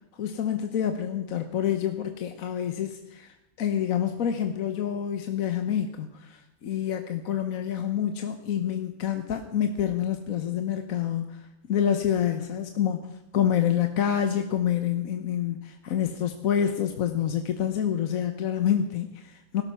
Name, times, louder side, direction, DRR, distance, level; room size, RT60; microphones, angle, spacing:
voice 1, 0.1-19.6, left 9 dB, 65° left, 7 dB, 1.3 m, -27 dB
16.5 x 13.0 x 5.6 m, 0.91 s
omnidirectional pair, 1.6 m